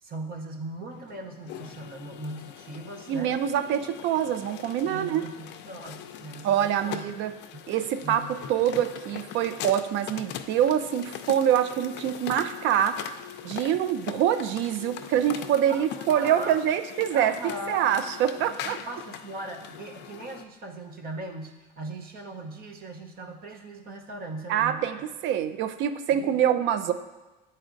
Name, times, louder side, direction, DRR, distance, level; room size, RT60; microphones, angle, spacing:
voice 1, 0.0-3.3 4.8-7.0 7.5-7.6 8.0-8.5 15.7-16.6 17.1-17.8 18.6-25.0 25.5-25.6 26.1-26.3, right 2 dB, 45° right, 3 dB, 0.8 m, -39 dB
sound 1, 0.9-20.4, left 10 dB, 55° left, 0.4 m, -41 dB
voice 2, 3.1-5.2 6.4-7.3 7.7-13.0 13.4-18.8 24.5-25.0 25.2-26.9, right 10 dB, 65° right, 11 dB, 0.5 m, -25 dB
9.0 x 4.2 x 2.5 m, 1.1 s
supercardioid pair, 95°, 21 cm